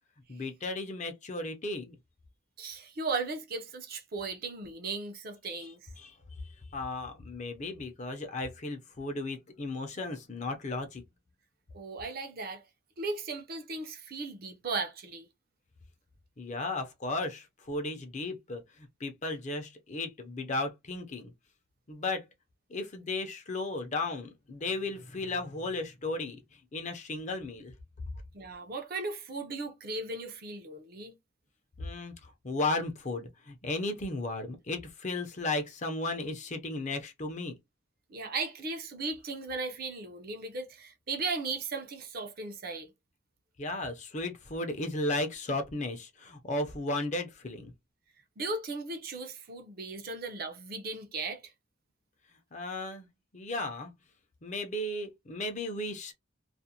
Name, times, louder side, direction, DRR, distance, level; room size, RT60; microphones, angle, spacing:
voice 1, 0.3-2.0 5.5-5.7 6.0-6.2 6.4-11.0 16.4-21.3 21.9-22.2 22.7-26.4 26.7-27.7 31.8-37.6 43.6-47.7 52.5-53.1 53.3-53.9 54.4-56.1, left 2 dB, 40° left, 0.6 m, -35 dB
voice 2, 2.6-5.8 11.7-12.6 13.0-15.3 28.3-31.1 38.1-42.9 48.4-51.4, right 3 dB, 50° right, 0.6 m, -36 dB
2.4 x 2.1 x 2.7 m
head